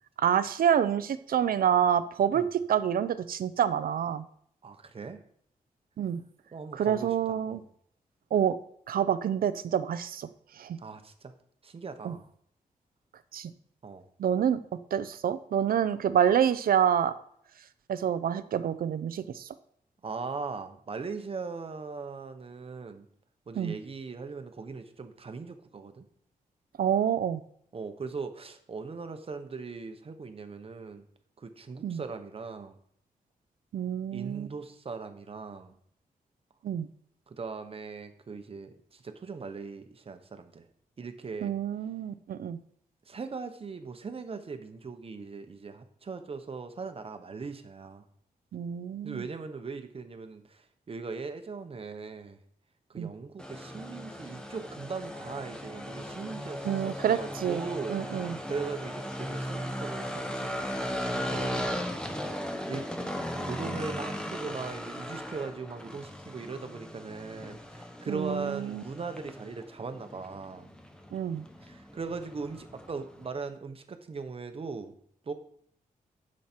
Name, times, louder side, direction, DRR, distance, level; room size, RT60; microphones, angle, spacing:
voice 1, 0.2-4.2 6.0-6.2 6.7-7.6 8.3-8.6 8.9-10.3 10.6-10.8 12.0-12.1 13.3-13.5 14.2-14.6 14.9-17.1 17.9-19.5 23.6-23.7 26.8-27.4 31.8-32.0 33.7-34.5 36.6-36.9 41.4-42.6 48.5-49.2 53.0-53.1 56.6-57.6 57.9-58.4 68.1-68.8 71.1-71.4, right 9 dB, 85° right, 13 dB, 0.6 m, -27 dB
voice 2, 4.6-5.2 6.5-7.6 10.8-11.3 11.6-12.3 13.8-14.1 20.0-23.0 23.5-26.1 27.7-31.0 31.4-32.8 34.1-35.7 37.3-40.7 41.0-41.5 43.1-48.0 49.0-52.4 52.9-60.9 61.2-61.8 62.7-62.9 63.3-70.7 71.6-74.9 75.2-75.3, right 4 dB, 40° right, 8 dB, 1.0 m, -39 dB
sound 1, 53.4-73.3, equal, 5° left, 1.1 m, -37 dB
10.5 x 6.4 x 4.5 m, 0.66 s
wide cardioid pair, 130°, 15 cm